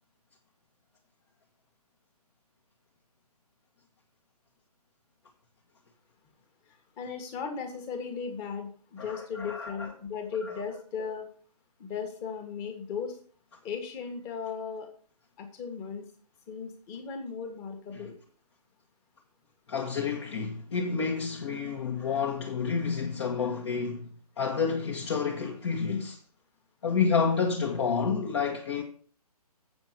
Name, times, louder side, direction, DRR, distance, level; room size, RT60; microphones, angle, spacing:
voice 1, 7.0-11.3 11.8-13.2 13.6-14.9 15.4-16.1 16.5-18.2, left 6 dB, 20° left, 1.7 m, -36 dB
voice 2, 9.0-9.9 10.4-10.5 17.9-18.1 19.7-24.1 24.4-26.2 26.8-28.8, left 5 dB, 45° left, 1.6 m, -29 dB
7.8 x 7.0 x 5.7 m
figure-of-eight pair, 145°, 20 cm